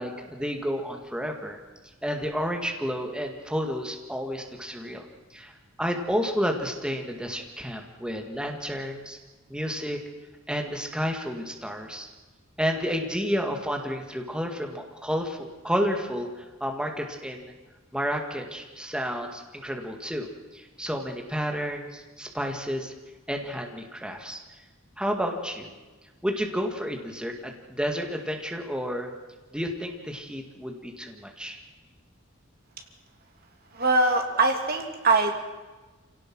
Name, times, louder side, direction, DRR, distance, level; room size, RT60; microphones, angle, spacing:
voice 1, 0.0-1.6 2.0-5.5 5.8-9.2 9.5-10.0 10.5-12.1 12.6-17.5 17.9-22.9 23.3-24.4 25.0-25.7 26.2-29.1 29.5-31.6, equal, 5° right, 3 dB, 2.0 m, -31 dB
voice 2, 33.7-35.4, right 3 dB, 45° right, 3 dB, 2.8 m, -22 dB
26.0 x 17.5 x 6.2 m, 1.2 s
head